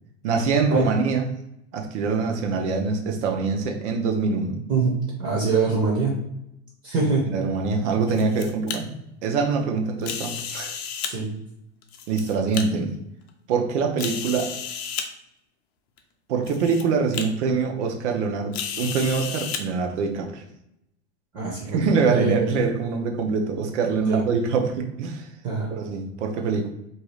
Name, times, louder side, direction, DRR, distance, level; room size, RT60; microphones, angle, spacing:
voice 1, 0.2-1.2 1.7-4.6 7.2-8.9 9.2-10.7 12.1-12.9 13.5-14.5 16.3-20.4 21.7-25.3 25.7-26.7, right 4 dB, 80° right, 4 dB, 0.7 m, -24 dB
voice 2, 4.7-6.2 6.8-7.3 11.0-11.3 21.3-22.5 24.1-24.2 25.4-25.7, right 4 dB, 35° right, -3 dB, 0.6 m, -24 dB
sound 1, 7.8-8.8 10.0-11.1 11.8-12.6 13.3-13.4 14.0-15.1 16.0-16.1 16.4-16.8 17.1-17.2 18.5-19.6, left 7 dB, 65° left, 0.5 m, -32 dB
2.7 x 2.3 x 3.1 m, 0.82 s
supercardioid pair, 160°, 35 cm